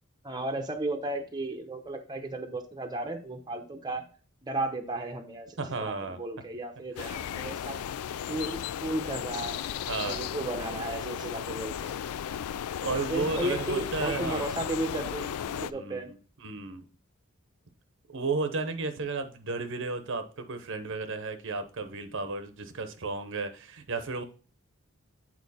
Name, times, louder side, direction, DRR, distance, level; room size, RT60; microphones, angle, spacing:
voice 1, 0.2-4.1 4.4-7.8 8.3-11.9 13.1-16.1, right 2 dB, 20° right, 0.8 m, -34 dB
voice 2, 5.6-6.2 7.0-7.1 9.9-10.2 12.8-14.5 15.7-16.2 16.4-16.8 18.1-24.2, right 3 dB, 60° right, 0.8 m, -33 dB
sound 1, 7.0-15.7, left 9 dB, 90° left, 0.4 m, -35 dB
8.6 x 4.4 x 4.2 m
head